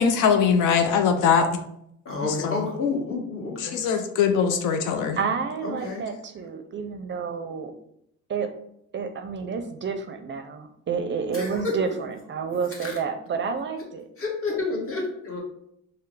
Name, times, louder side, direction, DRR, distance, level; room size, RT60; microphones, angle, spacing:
voice 1, 0.0-1.5 2.2-2.7 3.6-5.2, left 6 dB, 85° left, 6 dB, 0.5 m, -22 dB
voice 2, 2.0-3.8 5.6-6.0 11.3-11.7 12.8-12.9 14.2-15.4, left 3 dB, 45° left, -1 dB, 1.3 m, -29 dB
voice 3, 5.2-7.7 8.3-8.5 8.9-14.1, right 5 dB, 40° right, 7 dB, 0.4 m, -30 dB
4.5 x 2.0 x 3.2 m, 0.74 s
cardioid pair, 90°, 30 cm